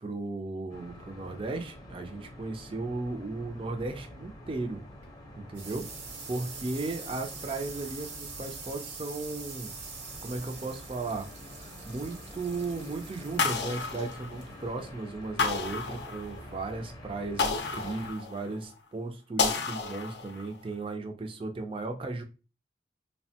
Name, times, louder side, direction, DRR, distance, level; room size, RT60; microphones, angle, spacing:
voice 1, 0.0-4.8 5.4-5.9 6.3-9.7 10.2-11.3 11.6-22.2, right 3 dB, 30° right, 0.4 m, -36 dB
sound 1, 0.7-18.1, equal, 20° left, 0.6 m, -47 dB
sound 2, 4.8-16.1, right 5 dB, 75° right, 0.7 m, -45 dB
sound 3, 13.4-14.7 15.4-16.6 17.4-18.6 19.4-20.6, left 4 dB, 70° left, 0.5 m, -31 dB
3.1 x 2.1 x 2.7 m
head